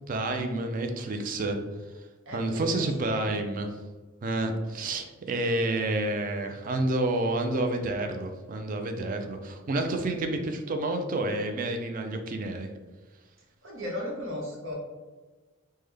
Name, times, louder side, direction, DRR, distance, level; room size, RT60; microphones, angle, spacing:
voice 1, 0.0-1.6 2.3-3.7 4.2-12.7, right 2 dB, 45° right, 5 dB, 0.4 m, -29 dB
voice 2, 2.3-3.3 13.6-14.7, left 1 dB, 75° right, -2 dB, 0.9 m, -36 dB
3.5 x 2.1 x 3.3 m, 1.3 s
head